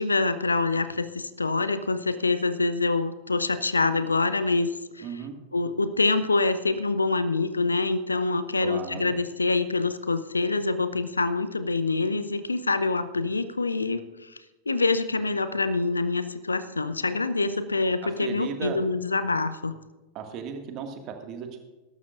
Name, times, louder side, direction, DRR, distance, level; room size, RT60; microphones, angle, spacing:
voice 1, 0.0-5.0 5.5-14.4 14.7-19.7, left 3 dB, 80° left, 13 dB, 0.7 m, -26 dB
voice 2, 5.0-5.4 8.6-9.1 18.0-18.8 20.1-21.6, right 7 dB, 35° right, 4 dB, 2.0 m, -36 dB
21.0 x 12.0 x 2.5 m, 1.1 s
figure-of-eight pair, 90°, 0 cm